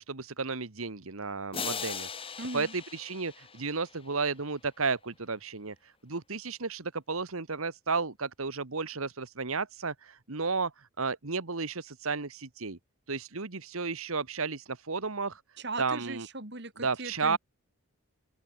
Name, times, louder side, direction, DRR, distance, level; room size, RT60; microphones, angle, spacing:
voice 1, 0.0-2.1 2.5-12.8 13.1-15.4 15.8-16.3 16.8-17.4, right 4 dB, 75° right, 1.5 m, -33 dB
sound 1, 1.5-4.4, left 6 dB, 25° left, 3.2 m, -39 dB
voice 2, 2.4-2.7 15.6-17.4, right 3 dB, 50° right, 3.3 m, -38 dB
open air
head